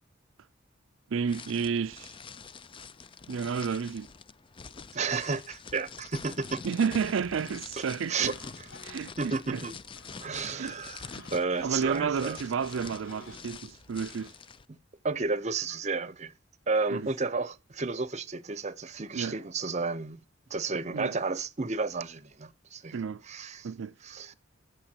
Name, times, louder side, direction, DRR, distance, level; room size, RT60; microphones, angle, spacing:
voice 1, 1.1-2.2 3.3-4.1 6.6-8.3 8.8-9.6 10.4-10.7 11.1-11.3 11.6-14.3 16.9-17.1 19.1-19.4 20.9-21.1 22.9-23.2 23.6-23.9, right 6 dB, 85° right, 0.4 m, -31 dB
sound 1, 1.3-14.6, left 5 dB, 25° left, 0.4 m, -46 dB
voice 2, 4.9-6.6 7.8-8.7 9.2-9.7 10.2-12.4 15.0-16.3 16.7-20.2 20.5-23.7 24.0-24.3, right 4 dB, 35° right, 0.7 m, -32 dB
sound 2, 6.9-14.3, left 1 dB, 70° left, 3.9 m, -53 dB
16.5 x 6.8 x 2.8 m
head